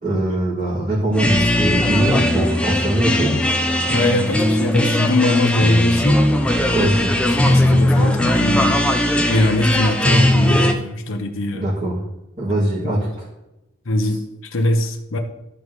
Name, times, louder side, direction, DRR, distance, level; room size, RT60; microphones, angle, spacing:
voice 1, 0.0-3.3 6.7-7.1 11.5-12.0 12.4-13.2, right 1 dB, 35° right, -10 dB, 2.7 m, -21 dB
sound 1, 1.1-10.7, left 1 dB, 5° left, 0.6 m, -18 dB
voice 2, 3.9-6.2 7.0-11.7 12.8-13.1 13.8-15.2, left 1 dB, 65° left, 4 dB, 0.9 m, -22 dB
13.5 x 5.3 x 3.2 m, 0.94 s
head